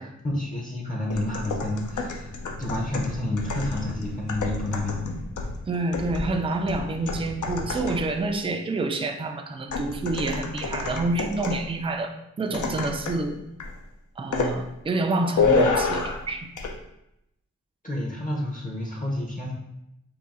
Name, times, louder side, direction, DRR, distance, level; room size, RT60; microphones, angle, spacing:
voice 1, 0.0-5.2 17.8-19.5, left 1 dB, 25° left, -1 dB, 0.7 m, -30 dB
sound 1, 1.1-8.2 9.7-11.7 12.5-13.3 13.6-13.8 14.3-14.6 15.4-16.3 16.6-16.7, left 4 dB, 75° left, 0.6 m, -29 dB
voice 2, 5.7-13.4 14.2-16.5, right 2 dB, 20° right, 4 dB, 0.3 m, -28 dB
3.7 x 2.7 x 4.1 m, 0.83 s
wide cardioid pair, 115°, 31 cm